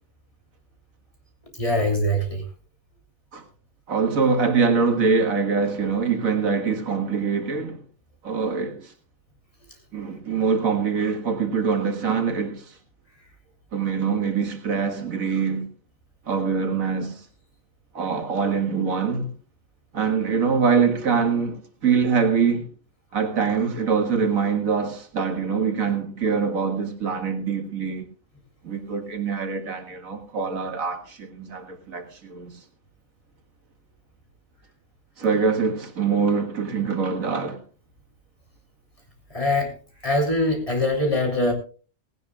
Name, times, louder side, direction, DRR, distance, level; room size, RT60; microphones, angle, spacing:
voice 1, 1.6-2.4 39.3-39.7 40.0-41.5, left 1 dB, 25° left, 3.5 m, -22 dB
voice 2, 3.9-7.8 8.2-8.9 9.9-12.7 13.7-15.7 16.3-17.2 17.9-19.3 19.9-22.7 23.1-28.1 28.6-32.5 35.2-37.6, right 5 dB, 85° right, 2.3 m, -24 dB
18.0 x 17.0 x 2.4 m
omnidirectional pair, 1.4 m